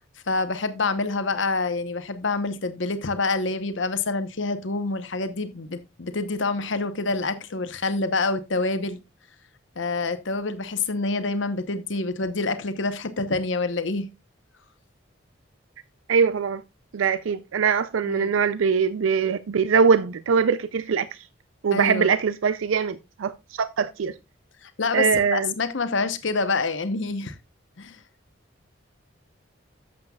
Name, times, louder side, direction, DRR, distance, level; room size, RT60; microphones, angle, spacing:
voice 1, 0.3-9.0 9.8-14.1 18.0-18.3 21.7-22.1 24.6-27.4 27.8-28.0, left 3 dB, 70° left, 1.0 m, -27 dB
voice 2, 16.1-16.6 16.9-21.1 21.6-24.2 24.9-25.5, right 6 dB, 80° right, 0.4 m, -22 dB
11.5 x 7.6 x 2.3 m
head